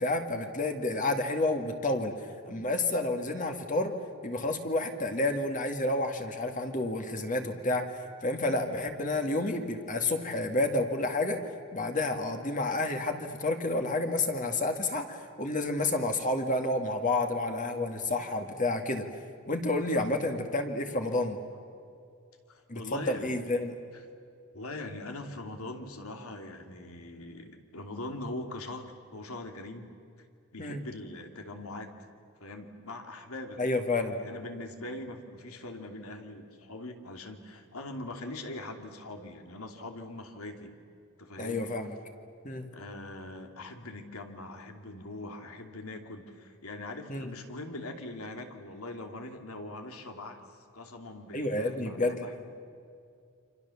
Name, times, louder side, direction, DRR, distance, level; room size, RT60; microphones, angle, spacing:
voice 1, 0.0-2.1 2.4-4.0 4.2-7.9 8.2-11.4 11.7-19.0 19.5-21.4 22.7-23.7 30.6-30.8 33.6-34.2 41.4-41.9 42.4-42.7 47.1-47.3 51.3-52.3, left 2 dB, 35° left, 5 dB, 2.0 m, -30 dB
voice 2, 22.5-23.4 24.5-29.9 30.5-31.9 32.4-33.6 34.0-40.7 41.2-41.7 42.7-50.4 50.7-52.5, left 2 dB, 80° left, 5 dB, 2.8 m, -42 dB
29.5 x 26.0 x 7.1 m, 2.4 s
head